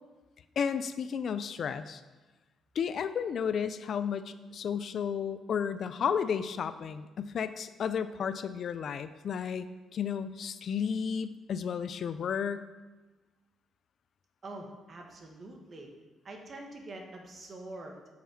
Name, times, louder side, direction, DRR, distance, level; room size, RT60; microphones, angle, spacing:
voice 1, 0.6-2.0 2.8-9.7 9.9-12.6, left 7 dB, 60° left, 12 dB, 0.3 m, -33 dB
voice 2, 14.4-15.9 16.2-18.1, right 2 dB, 45° right, 2 dB, 1.3 m, -45 dB
5.7 x 4.2 x 5.9 m, 1.2 s
cardioid pair, 90°, 0 cm